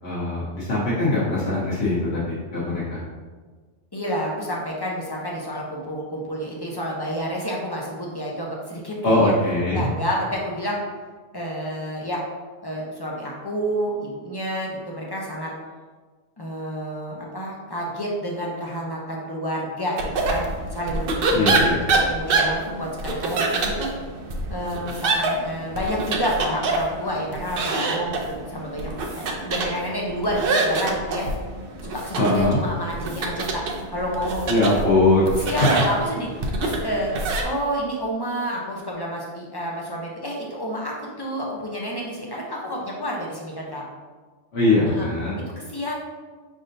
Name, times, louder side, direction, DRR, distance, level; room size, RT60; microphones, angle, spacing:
voice 1, 0.0-3.0 9.0-9.9 21.3-21.8 32.2-32.6 34.5-35.5 44.5-45.3, left 2 dB, 60° left, -8 dB, 1.2 m, -21 dB
voice 2, 3.9-9.3 9.7-10.8 11.3-12.2 12.6-15.5 16.4-20.4 20.7-23.9 24.5-31.3 31.8-34.5 35.5-43.8 44.9-45.1 45.6-45.9, equal, 30° left, -3 dB, 0.5 m, -29 dB
sound 1, 20.0-37.4, right 3 dB, 55° right, 0.7 m, -26 dB
5.4 x 3.6 x 2.6 m, 1.4 s
omnidirectional pair, 1.3 m